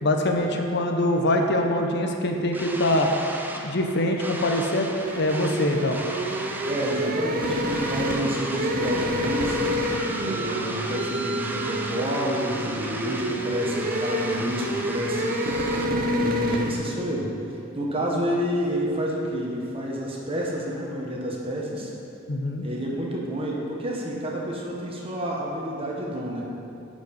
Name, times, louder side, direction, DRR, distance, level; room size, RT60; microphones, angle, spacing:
voice 1, 0.0-3.1 3.6-6.0 22.3-22.6, left 1 dB, 55° left, 3 dB, 0.7 m, -24 dB
sound 1, 2.5-15.8, right 1 dB, 10° right, 0.5 m, -36 dB
sound 2, 5.0-16.7, equal, 45° right, 0.7 m, -28 dB
voice 2, 6.6-9.8 10.3-17.3 17.7-21.9 22.6-26.4, equal, 30° right, -3 dB, 1.3 m, -29 dB
9.9 x 5.3 x 5.4 m, 2.7 s
head